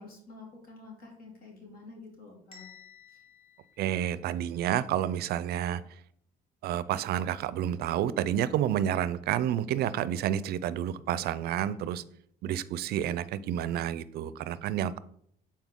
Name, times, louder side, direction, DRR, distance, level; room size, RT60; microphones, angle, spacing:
voice 1, 0.0-2.7 3.1-3.2, left 3 dB, 60° left, -1 dB, 2.7 m, -49 dB
Bell, 2.5-4.6, left 7 dB, 35° left, 1.7 m, -55 dB
voice 2, 3.8-5.8 6.6-12.0 12.4-15.0, right 10 dB, 70° right, 17 dB, 0.5 m, -30 dB
8.1 x 4.3 x 3.7 m, 0.67 s
cardioid pair, 110°, 17 cm